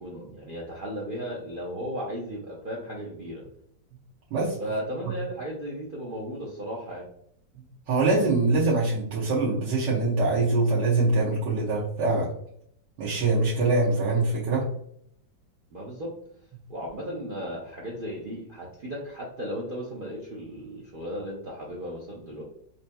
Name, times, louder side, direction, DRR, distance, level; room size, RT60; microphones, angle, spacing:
voice 1, 0.0-3.5 4.6-7.0 15.7-16.1 16.7-22.4, equal, 60° right, -3 dB, 0.5 m, -35 dB
voice 2, 7.9-12.3 13.0-14.6, right 3 dB, 80° right, -7 dB, 1.5 m, -23 dB
4.9 x 2.7 x 2.2 m, 0.68 s
omnidirectional pair, 1.9 m